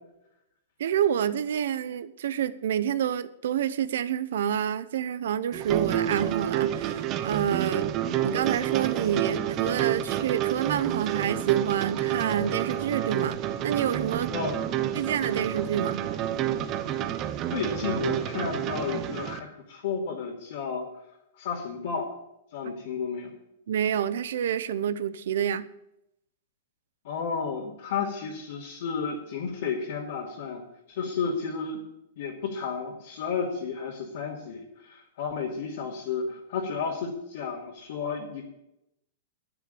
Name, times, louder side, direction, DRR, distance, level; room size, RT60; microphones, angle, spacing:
voice 1, 0.8-7.9 8.2-14.3 14.9-16.0 23.7-25.7, right 9 dB, 75° right, 15 dB, 0.8 m, -28 dB
sound 1, 5.5-19.4, right 11 dB, 30° right, 0.8 m, -29 dB
voice 2, 14.3-14.6 17.5-20.9 21.4-22.1 22.5-23.3 27.0-30.6 30.9-31.8 32.2-38.5, left 5 dB, 65° left, -4 dB, 2.6 m, -32 dB
9.9 x 9.6 x 6.9 m, 0.83 s
hypercardioid pair, 145°, 0 cm